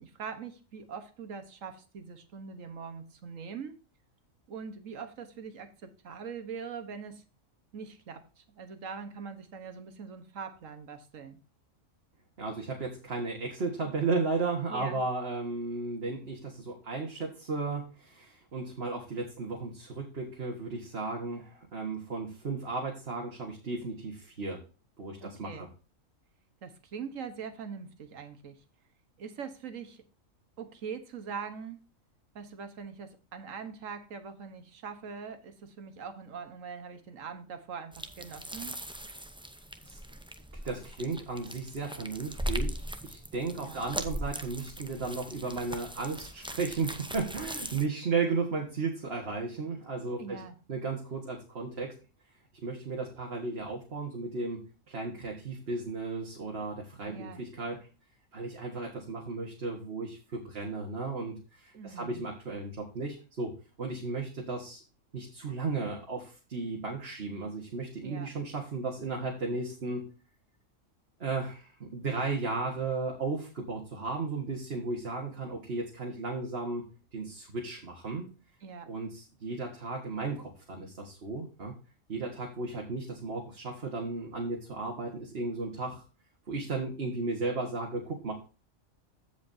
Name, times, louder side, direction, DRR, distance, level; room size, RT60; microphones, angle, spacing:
voice 1, 0.0-3.8 4.5-7.2 7.7-11.4 14.7-15.0 25.2-25.7 26.6-28.6 29.2-30.0 30.6-31.8 32.3-38.8 43.5-43.9 50.2-50.6 57.0-57.4 61.7-62.2 68.0-68.3 78.6-78.9, right 6 dB, 80° right, 8 dB, 1.5 m, -42 dB
voice 2, 12.4-24.6 25.0-25.7 39.8-40.0 40.6-50.4 50.7-51.9 52.6-57.8 58.3-63.5 63.8-64.8 65.1-70.0 71.2-78.3 78.9-81.7 82.1-86.0 86.5-88.3, right 3 dB, 50° right, 0 dB, 1.7 m, -35 dB
sound 1, 37.9-47.9, equal, 10° right, 0.3 m, -39 dB
15.0 x 5.1 x 2.7 m, 0.35 s
omnidirectional pair, 1.3 m